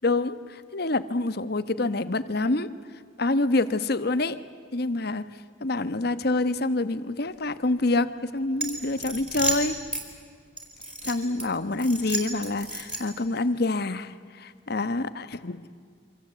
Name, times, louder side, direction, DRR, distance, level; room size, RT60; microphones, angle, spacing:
voice 1, 0.0-2.7 3.2-4.4 4.7-5.3 5.6-9.8 11.0-15.6, left 2 dB, 55° left, 12 dB, 1.1 m, -27 dB
sound 1, 8.6-10.0 10.6-11.4 11.8-13.2, right 2 dB, 5° right, 4.8 m, -32 dB
28.0 x 25.5 x 8.2 m, 2.1 s
head